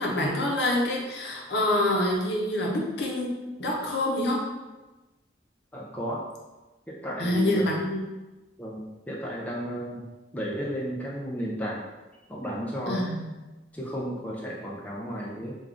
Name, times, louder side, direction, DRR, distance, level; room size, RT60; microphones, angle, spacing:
voice 1, 0.0-4.4 7.2-8.0 12.9-13.3, left 1 dB, 65° left, -2 dB, 0.7 m, -26 dB
voice 2, 5.7-6.2 6.9-7.7 8.6-10.1 10.3-11.8 12.3-13.1 13.7-15.6, equal, 10° left, -5 dB, 0.4 m, -33 dB
3.5 x 2.4 x 3.6 m, 1.1 s
head